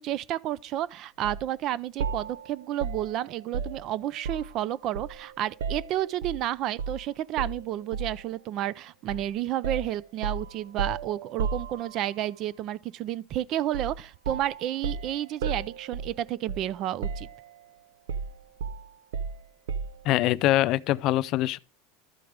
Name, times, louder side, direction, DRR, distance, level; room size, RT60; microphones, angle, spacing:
voice 1, 0.0-17.3, right 12 dB, 45° right, 0.4 m, -31 dB
sound 1, 1.2-1.5 2.0-4.6 4.9-6.4 6.8-7.0 7.4-8.3 9.1-9.3 9.6-12.2 13.7-14.0 14.2-16.8 17.0-17.6 18.1-20.1, right 6 dB, 90° right, 0.7 m, -34 dB
voice 2, 20.0-21.6, left 15 dB, 50° left, 0.4 m, -23 dB
12.5 x 4.7 x 5.0 m
supercardioid pair, 130°, 0 cm